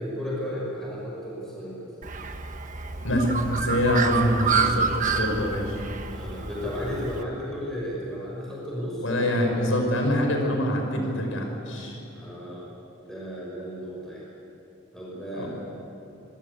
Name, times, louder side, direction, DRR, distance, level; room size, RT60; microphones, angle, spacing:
voice 1, 0.0-1.9 6.1-9.5 12.1-12.7 13.0-14.3 14.9-15.5, equal, ahead, -6 dB, 6.0 m, -34 dB
Bird, 2.0-7.2, right 5 dB, 40° right, 1.4 m, -28 dB
voice 2, 3.0-5.8 9.0-12.0 15.3-15.5, equal, 75° left, 3 dB, 5.5 m, -25 dB
25.5 x 21.0 x 8.3 m, 2.9 s
head